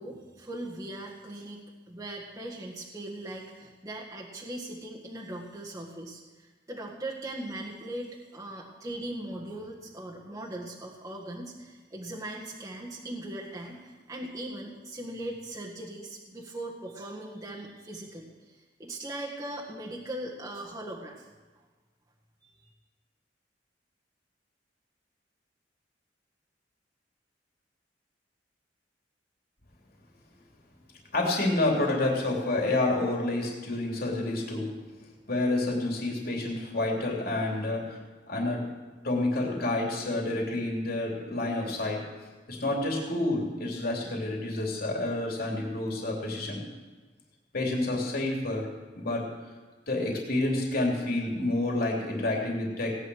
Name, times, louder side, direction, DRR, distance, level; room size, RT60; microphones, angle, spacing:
voice 1, 0.0-21.2 22.4-22.5, right 1 dB, 20° right, -4 dB, 1.7 m, -39 dB
voice 2, 31.1-34.7 35.3-38.0 38.3-38.6 39.0-42.0 42.5-46.6 47.5-48.7 49.0-49.2 49.9-53.0, left 2 dB, 60° left, -1 dB, 3.1 m, -29 dB
17.5 x 9.8 x 6.3 m, 1.3 s
head